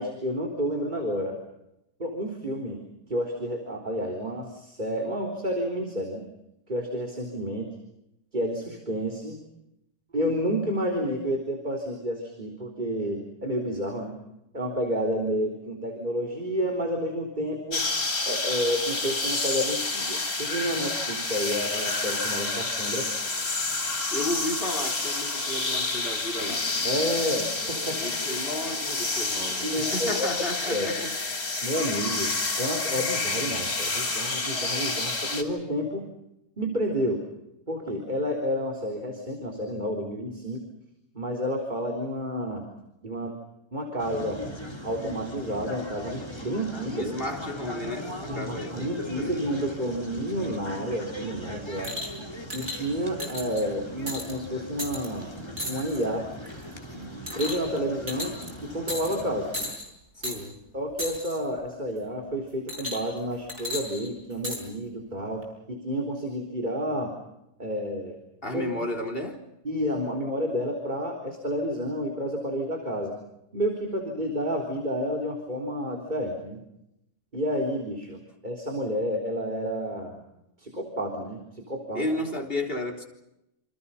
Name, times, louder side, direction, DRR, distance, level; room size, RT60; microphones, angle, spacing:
voice 1, 0.0-1.4 2.0-2.8 3.1-6.2 6.7-7.7 8.3-9.4 10.1-14.1 14.5-17.8 18.3-23.1 26.8-28.0 29.6-30.3 30.7-30.9 31.6-36.0 36.6-37.2 37.7-40.6 41.1-42.7 43.0-43.4 43.7-44.4 44.8-47.1 48.3-51.9 52.5-55.3 55.6-56.3 57.3-58.3 58.6-59.5 60.7-67.1 67.6-68.2 68.5-68.6 69.6-73.1 73.5-76.6 77.3-80.2 80.6-82.1, equal, 30° right, 3.9 m, -30 dB
sound 1, 17.7-35.4, left 3 dB, 85° left, 4.2 m, -29 dB
voice 2, 24.1-26.7 28.0-31.1 46.9-49.4 60.2-60.6 68.4-69.5 81.9-83.0, left 1 dB, 40° left, 4.0 m, -33 dB
sound 2, 44.0-59.7, equal, 20° left, 3.8 m, -39 dB
sound 3, 51.8-52.2 52.5-52.8 53.2-53.6 54.1-54.3 54.8-55.1 55.6-56.0 56.5-56.7 57.3-57.8 58.1-58.5 58.9-59.2 59.5-59.9 60.2-60.4 61.0-61.4 62.7-63.2 63.5-64.6 65.4-65.5, left 1 dB, 70° right, 6.9 m, -34 dB
28.0 x 28.0 x 5.7 m
omnidirectional pair, 1.5 m